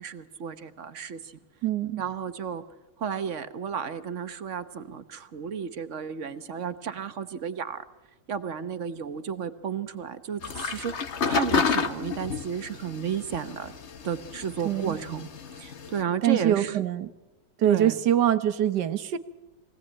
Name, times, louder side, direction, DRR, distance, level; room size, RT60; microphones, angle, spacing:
voice 1, 0.0-1.4 2.0-2.6 3.0-7.8 8.3-13.7 14.0-15.3 15.6-16.8 17.6-17.9, right 7 dB, 50° right, 11 dB, 1.2 m, -33 dB
voice 2, 1.6-2.0 14.6-15.0 16.2-17.1 17.6-19.2, right 11 dB, 70° right, 12 dB, 1.6 m, -24 dB
sound 1, 10.4-16.0, left 5 dB, 45° left, 1.1 m, -30 dB
23.5 x 17.5 x 8.7 m, 1.1 s
omnidirectional pair, 1.9 m